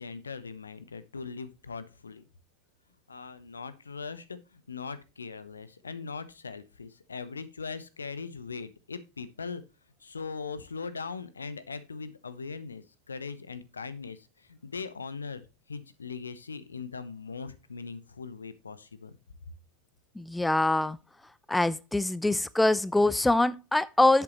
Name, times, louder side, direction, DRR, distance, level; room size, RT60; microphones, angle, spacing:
voice 1, 0.0-2.2 3.1-9.6 10.0-15.4 15.7-19.2, left 5 dB, 75° left, 1.0 m, -40 dB
voice 2, 20.2-21.0 21.5-24.2, left 2 dB, 5° left, 0.4 m, -24 dB
11.0 x 8.1 x 3.1 m
figure-of-eight pair, 90°, 0 cm